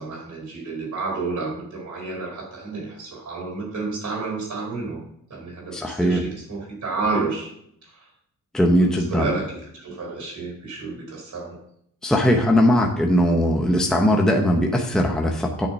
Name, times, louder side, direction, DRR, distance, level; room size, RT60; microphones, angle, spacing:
voice 1, 0.0-5.0 5.3-7.5 7.9-8.0 8.8-11.6, right 3 dB, 55° right, -1 dB, 4.4 m, -30 dB
voice 2, 5.7-6.2 8.5-9.3 12.0-15.7, equal, ahead, 1 dB, 0.9 m, -19 dB
9.0 x 6.6 x 5.4 m, 0.69 s
wide cardioid pair, 160°, 35 cm